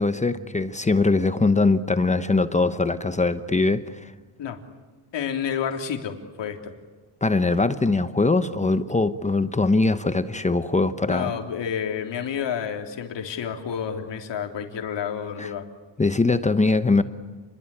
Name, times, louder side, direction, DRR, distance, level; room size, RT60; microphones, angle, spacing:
voice 1, 0.0-4.1 7.2-11.3 15.4-15.5 16.0-17.0, left 3 dB, 15° left, 11 dB, 0.9 m, -22 dB
voice 2, 5.1-6.7 11.1-15.7, left 8 dB, 75° left, 4 dB, 3.7 m, -30 dB
30.0 x 22.5 x 8.6 m, 1.4 s
wide cardioid pair, 155°, 44 cm